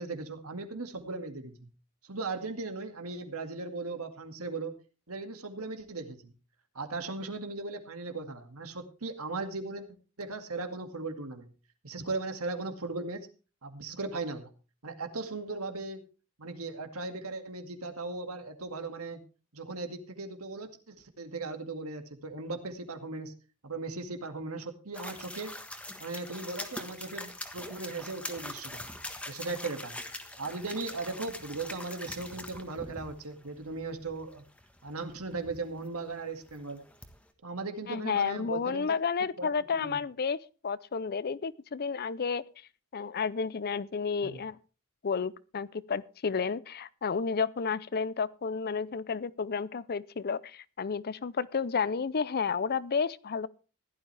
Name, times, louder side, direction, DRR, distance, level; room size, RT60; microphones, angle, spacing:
voice 1, 0.0-1.7 2.0-4.7 5.1-6.3 6.7-9.9 10.2-11.5 11.8-13.3 13.6-14.5 14.8-16.0 16.4-19.2 19.5-23.3 23.6-25.6 26.0-28.9 29.3-30.0 30.4-34.4 34.8-36.8 37.4-39.0 39.4-40.0 44.2-44.4, right 3 dB, 75° right, 2.1 m, -38 dB
sound 1, 24.9-37.3, left 1 dB, 5° left, 1.4 m, -43 dB
voice 2, 37.9-40.4 40.6-42.4 42.9-44.6 45.0-53.5, left 5 dB, 45° left, 0.5 m, -31 dB
16.0 x 12.0 x 3.4 m
head